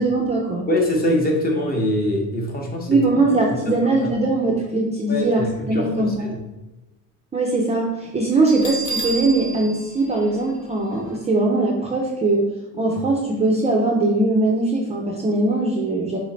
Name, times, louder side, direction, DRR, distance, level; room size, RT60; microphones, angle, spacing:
voice 1, 0.0-0.7 2.9-6.3 7.3-16.2, right 2 dB, 20° right, -2 dB, 0.4 m, -21 dB
voice 2, 0.7-3.0 3.7-4.1 5.1-6.4, left 1 dB, 25° left, 0 dB, 0.8 m, -23 dB
Bell, 8.5-11.2, right 3 dB, 65° left, 1.1 m, -31 dB
4.1 x 3.2 x 3.8 m, 1.0 s
cardioid pair, 175°, 33 cm